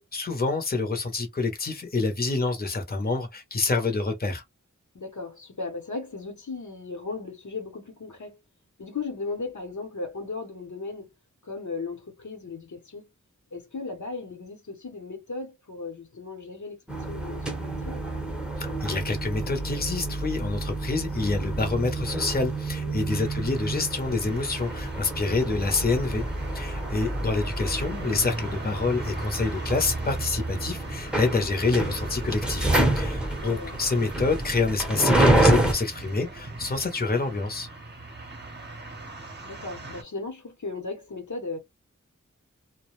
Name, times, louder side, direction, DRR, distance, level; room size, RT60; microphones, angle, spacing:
voice 1, 0.0-4.4 18.6-26.3 26.5-37.7, left 3 dB, 30° left, 0.7 m, -27 dB
voice 2, 4.9-8.4 8.8-11.1 11.4-13.1 13.5-18.1 22.7-23.2 33.4-33.8 39.4-41.6, left 3 dB, 70° left, 0.9 m, -36 dB
sound 1, 16.9-35.7, right 1 dB, 5° right, 0.8 m, -28 dB
sound 2, 23.1-40.0, right 2 dB, 35° right, 0.8 m, -40 dB
2.2 x 2.1 x 3.0 m
wide cardioid pair, 70°, 30 cm